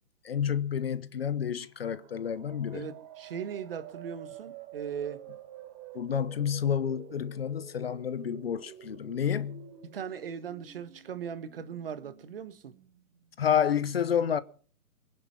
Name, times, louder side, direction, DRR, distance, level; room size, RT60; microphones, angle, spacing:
voice 1, 0.2-2.9 5.9-9.7 13.4-14.4, left 8 dB, 45° left, 1.0 m, -29 dB
sound 1, 1.6-13.3, right 10 dB, 25° right, 3.8 m, -50 dB
voice 2, 2.7-5.2 9.8-12.8, right 7 dB, 40° right, 1.5 m, -39 dB
23.5 x 10.5 x 5.6 m
figure-of-eight pair, 140°, 43 cm